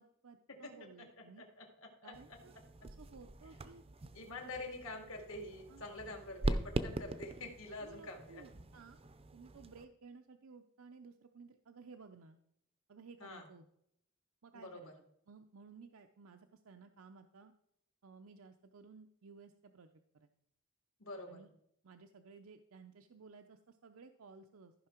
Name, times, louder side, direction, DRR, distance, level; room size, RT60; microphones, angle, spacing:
voice 1, 0.0-1.4 2.0-2.5 2.8-3.8 4.4-4.6 5.7-5.8 7.8-9.0 9.3-12.4 12.9-13.7 14.4-14.9 15.3-17.5 18.0-20.3 21.3-21.5 21.8-24.7, right 4 dB, 70° right, 6 dB, 0.6 m, -56 dB
voice 2, 1.6-2.1 4.1-8.4 13.2-13.5 14.5-14.9 21.0-21.4, left 2 dB, 65° left, 3 dB, 2.1 m, -46 dB
sound 1, 2.1-9.9, right 2 dB, 25° right, 0.5 m, -42 dB
14.0 x 5.7 x 4.4 m, 0.73 s
head